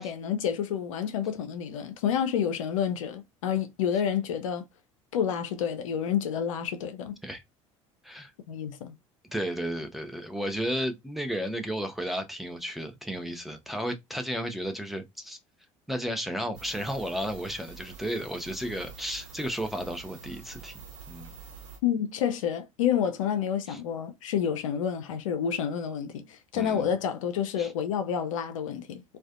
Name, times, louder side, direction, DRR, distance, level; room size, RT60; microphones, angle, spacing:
voice 1, 0.0-4.6 5.1-7.2 8.5-8.9 21.8-29.0, left 8 dB, 70° left, 0.4 m, -29 dB
voice 2, 9.3-15.4 15.9-21.3 23.7-23.8 26.5-26.9 27.6-27.7, equal, ahead, 0.5 m, -33 dB
sound 1, 16.5-21.8, right 6 dB, 70° right, 1.0 m, -46 dB
2.4 x 2.2 x 2.4 m
figure-of-eight pair, 60°, 17 cm